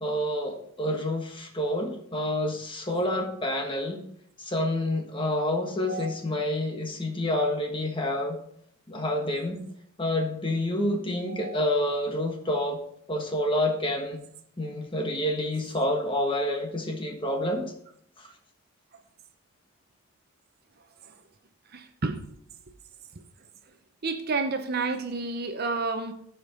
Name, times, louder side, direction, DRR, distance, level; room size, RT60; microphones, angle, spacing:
voice 1, 0.0-4.0 4.4-8.4 8.9-9.6 10.0-12.8 13.1-14.2 14.6-17.7 18.2-18.3, left 1 dB, 25° left, 1.3 m, -28 dB
voice 2, 11.3-11.6 21.0-21.2 21.7-22.2 24.0-26.1, right 3 dB, 45° right, 0.7 m, -30 dB
13.5 x 5.2 x 3.8 m
head